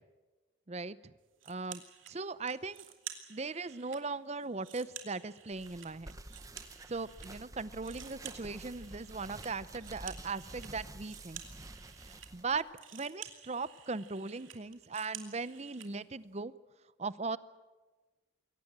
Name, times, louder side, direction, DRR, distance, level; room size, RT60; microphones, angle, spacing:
voice 1, 0.7-1.1 1.5-2.8 3.3-6.2 6.9-11.4 12.0-12.6 12.9-16.5 17.0-17.4, right 4 dB, 35° right, 16 dB, 0.7 m, -39 dB
sound 1, 1.4-2.1 2.5-4.0 4.4-7.3 7.6-15.9, right 10 dB, 85° right, 2.7 m, -51 dB
sound 2, 5.5-12.6, right 2 dB, 15° right, 1.0 m, -50 dB
23.0 x 18.0 x 8.9 m, 1.2 s
head